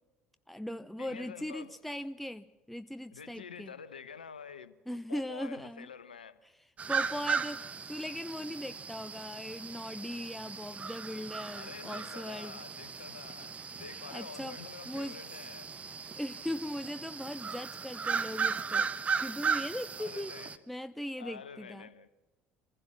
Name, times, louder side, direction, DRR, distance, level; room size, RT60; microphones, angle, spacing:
voice 1, 0.5-3.7 4.9-5.9 6.9-12.6 14.1-14.6 14.9-15.2 16.2-18.9 19.2-20.3 20.7-21.9, left 1 dB, ahead, 0.6 m, -39 dB
voice 2, 1.0-1.7 3.1-6.4 11.5-15.7 20.0-20.6 21.2-22.1, left 6 dB, 85° left, 0.8 m, -48 dB
sound 1, 6.8-20.6, right 6 dB, 25° right, 1.0 m, -36 dB
25.5 x 15.5 x 7.2 m
figure-of-eight pair, 60°, 5 cm